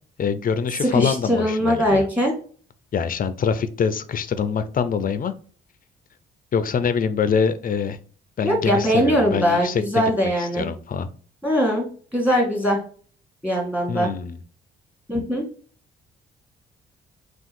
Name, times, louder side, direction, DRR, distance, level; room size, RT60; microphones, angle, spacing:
voice 1, 0.2-2.0 2.9-5.3 6.5-8.0 8.4-11.1 13.9-14.4, left 6 dB, 45° left, 12 dB, 0.5 m, -24 dB
voice 2, 0.8-2.3 8.4-10.7 11.4-11.9 12.1-12.8 13.4-14.1 15.1-15.5, equal, 5° right, -1 dB, 2.1 m, -21 dB
3.6 x 2.5 x 4.3 m, 0.43 s
cardioid pair, 90°, 20 cm